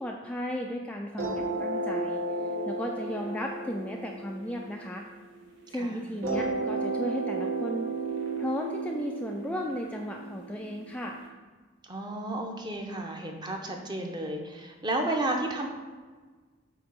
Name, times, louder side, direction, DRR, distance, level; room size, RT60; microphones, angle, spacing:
voice 1, 0.0-2.2 2.7-5.0 5.7-7.9 8.4-11.2, left 1 dB, 5° left, 0 dB, 0.3 m, -35 dB
sound 1, 1.2-5.6 6.2-11.2, right 3 dB, 75° right, 1.5 m, -33 dB
voice 2, 11.8-15.7, right 1 dB, 20° right, 2 dB, 0.7 m, -32 dB
7.9 x 2.9 x 5.3 m, 1.4 s
head